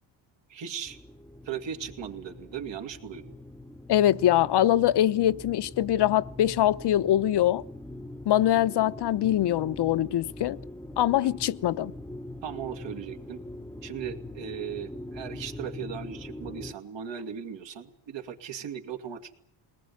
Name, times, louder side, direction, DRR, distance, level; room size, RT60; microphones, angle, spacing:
voice 1, 0.5-1.0 1.4-3.3 11.2-11.3 12.4-13.4 13.8-19.3, right 8 dB, 70° right, 2.5 m, -37 dB
sound 1, 0.8-16.7, left 1 dB, 5° left, 1.0 m, -42 dB
voice 2, 3.9-7.6 8.3-10.6 11.0-11.9, left 12 dB, 60° left, 0.9 m, -23 dB
21.5 x 19.5 x 9.5 m
cardioid pair, 95°, 46 cm